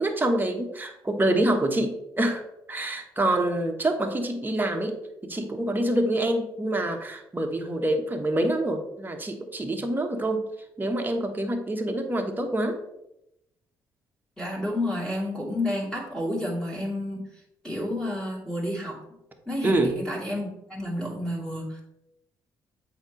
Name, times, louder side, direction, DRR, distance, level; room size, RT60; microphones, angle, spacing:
voice 1, 0.0-5.0 5.2-10.4 10.8-12.8 19.6-19.9, right 1 dB, 20° right, 4 dB, 1.2 m, -26 dB
voice 2, 14.4-17.2 17.6-19.0 19.5-21.8, left 1 dB, 5° left, -4 dB, 2.5 m, -30 dB
7.9 x 3.0 x 5.2 m, 0.85 s
hypercardioid pair, 45°, 10 cm